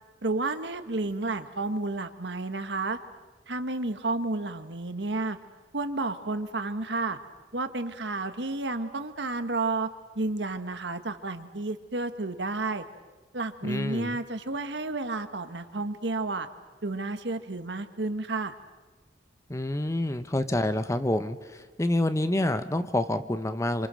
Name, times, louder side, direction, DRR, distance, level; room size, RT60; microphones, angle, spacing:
voice 1, 0.2-3.0 3.5-5.4 5.7-7.2 7.5-9.9 10.1-12.8 13.3-16.5 16.8-18.5, right 2 dB, 75° right, 9 dB, 1.5 m, -31 dB
voice 2, 13.6-14.2 19.5-23.9, left 1 dB, 15° left, 10 dB, 0.9 m, -28 dB
27.0 x 26.5 x 6.3 m, 1.3 s
head